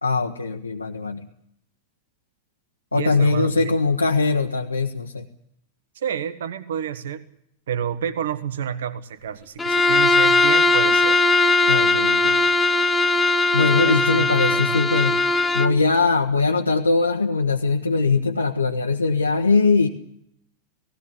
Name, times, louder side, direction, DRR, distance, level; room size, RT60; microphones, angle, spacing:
voice 1, 0.0-1.2 2.9-5.3 11.7-12.4 13.5-15.2 15.5-19.9, left 4 dB, 80° left, 0 dB, 1.3 m, -21 dB
voice 2, 2.9-3.8 5.9-7.2 7.7-11.2 13.6-15.2, right 8 dB, 60° right, 13 dB, 1.5 m, -29 dB
Bowed string instrument, 9.6-15.8, left 2 dB, 15° left, 1.1 m, -19 dB
18.5 x 17.0 x 10.0 m, 0.72 s
figure-of-eight pair, 90°, 0 cm